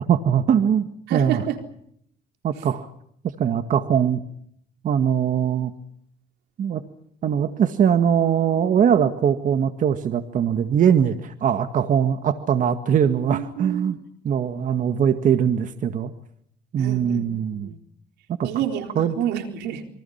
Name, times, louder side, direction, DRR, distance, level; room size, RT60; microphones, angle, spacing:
voice 1, 0.0-1.4 2.4-2.9 3.4-4.2 4.8-5.7 6.6-6.8 7.2-14.0 14.2-16.1 16.7-17.7 18.4-18.5 19.0-19.1, right 8 dB, 50° right, 8 dB, 1.9 m, -21 dB
voice 2, 1.1-1.6 13.2-13.9 16.8-17.8 18.4-19.9, right 10 dB, 85° right, 5 dB, 4.1 m, -29 dB
27.5 x 24.5 x 5.8 m, 0.69 s
cardioid pair, 110°, 17 cm